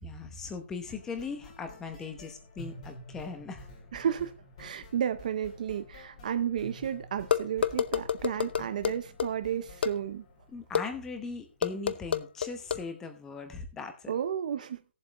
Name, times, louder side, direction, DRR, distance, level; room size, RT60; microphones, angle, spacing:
voice 1, 0.0-3.7 10.5-14.1, left 4 dB, 5° left, 0.8 m, -39 dB
sound 1, 0.9-11.8, left 1 dB, 30° left, 3.2 m, -50 dB
voice 2, 3.9-4.3 4.6-10.2 14.1-14.8, right 9 dB, 40° right, 0.6 m, -32 dB
sound 2, 7.3-9.3 9.8-9.9 10.7-10.9 11.6-12.8, left 8 dB, 60° left, 0.7 m, -28 dB
17.5 x 7.5 x 3.0 m
hypercardioid pair, 175°, 7 cm